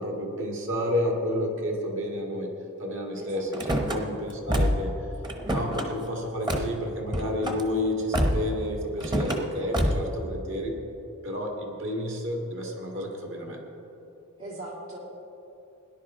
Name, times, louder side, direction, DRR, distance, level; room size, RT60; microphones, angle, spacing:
voice 1, 0.0-2.5 2.8-4.9 5.5-10.8 11.2-13.6, left 1 dB, 60° right, 1 dB, 1.9 m, -30 dB
voice 2, 3.2-3.8 14.4-15.0, right 1 dB, 75° right, -4 dB, 3.0 m, -40 dB
Car / Slam, 3.5-4.0 4.5-4.9 5.2-5.9 6.5-6.7 7.1-7.6 8.1-8.5 9.0-9.4 9.7-10.1, equal, 20° right, 0.9 m, -26 dB
18.0 x 10.5 x 3.7 m, 3.0 s
head